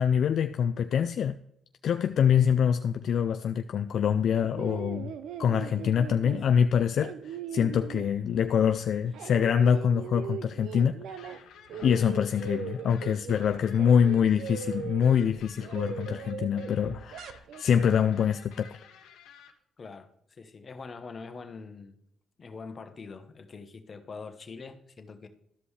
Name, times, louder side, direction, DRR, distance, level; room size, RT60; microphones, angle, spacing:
voice 1, 0.0-1.4 1.8-5.1 5.4-11.4 11.8-18.8, left 8 dB, 65° left, 0.4 m, -25 dB
sound 1, 4.2-8.6 8.9-11.4 11.7-17.6, right 8 dB, 80° right, 0.6 m, -40 dB
sound 2, 11.2-19.5, left 8 dB, 85° left, 0.9 m, -53 dB
voice 2, 19.8-22.0 22.4-25.3, left 4 dB, 40° left, 1.1 m, -44 dB
13.0 x 5.3 x 3.2 m
cardioid pair, 90°, 0 cm